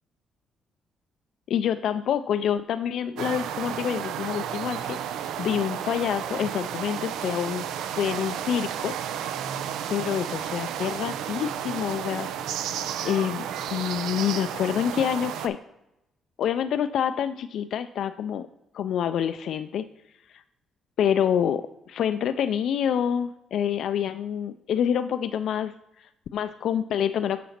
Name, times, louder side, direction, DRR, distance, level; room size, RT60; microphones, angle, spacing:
voice 1, 1.5-7.7 8.0-9.0 9.9-12.5 13.0-15.6 16.4-18.5 18.7-19.9 20.3-20.4 21.0-27.4, left 9 dB, 70° left, 10 dB, 0.3 m, -27 dB
sound 1, 3.2-15.5, right 9 dB, 90° right, 0.6 m, -32 dB
8.5 x 4.0 x 5.8 m, 0.90 s
cardioid pair, 90°, 0 cm